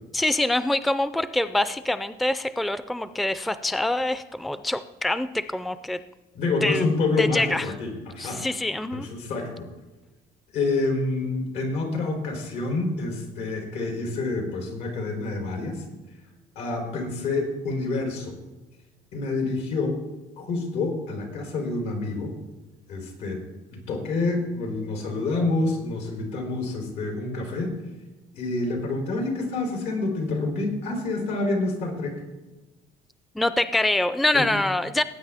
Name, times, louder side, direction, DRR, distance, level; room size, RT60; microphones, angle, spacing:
voice 1, 0.1-6.0 6.6-6.8 7.2-7.7 8.2-9.1 33.3-35.0, left 1 dB, ahead, 13 dB, 0.4 m, -25 dB
voice 2, 6.3-8.4 8.9-9.7 10.5-15.8 16.6-18.3 19.1-20.0 20.4-22.3 22.9-23.4 23.7-27.7 28.3-32.2 34.3-34.4, left 3 dB, 90° left, 2 dB, 3.6 m, -27 dB
18.5 x 8.7 x 3.5 m, 1.1 s
cardioid pair, 110°, 17 cm